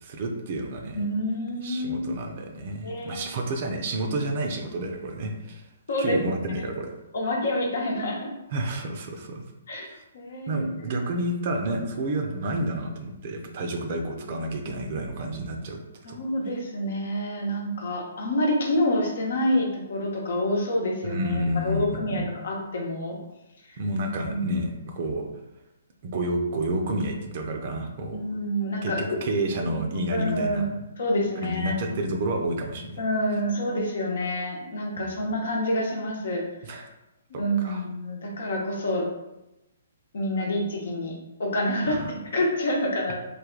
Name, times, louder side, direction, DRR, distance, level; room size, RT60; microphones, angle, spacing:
voice 1, 0.0-1.0 1.6-5.6 6.0-6.9 8.5-9.4 9.9-10.0 10.5-15.8 16.1-16.2 21.0-22.3 23.8-25.3 26.0-28.2 28.8-30.7 31.4-32.9 35.0-35.1 36.6-36.9 37.3-37.8 41.8-42.1, right 1 dB, 50° right, 3 dB, 0.6 m, -30 dB
voice 2, 0.9-2.0 2.8-3.2 5.9-6.2 7.1-8.3 9.7-9.9 10.1-10.9 16.0-23.2 23.7-23.8 24.3-24.6 28.1-29.2 29.7-29.8 30.1-30.7 31.0-31.7 33.0-36.4 37.3-39.1 40.1-43.2, left 1 dB, 65° left, 0 dB, 0.9 m, -27 dB
3.3 x 2.2 x 3.8 m, 0.94 s
hypercardioid pair, 130°, 0 cm